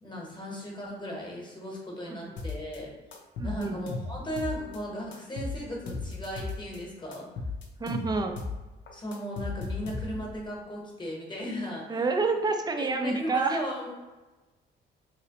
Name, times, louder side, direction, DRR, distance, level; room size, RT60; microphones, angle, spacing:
voice 1, 0.0-2.9 3.4-7.3 8.9-12.0 12.7-13.9, equal, 25° left, -2 dB, 1.0 m, -37 dB
sound 1, 2.4-2.8 3.1-4.8 5.1-6.8 7.1-8.6 8.9-10.4, left 3 dB, 70° left, 0.6 m, -36 dB
voice 2, 3.4-3.8 7.8-8.4 11.9-13.6, right 3 dB, 20° right, 5 dB, 0.4 m, -28 dB
2.9 x 2.9 x 2.9 m, 1.1 s
cardioid pair, 90°, 20 cm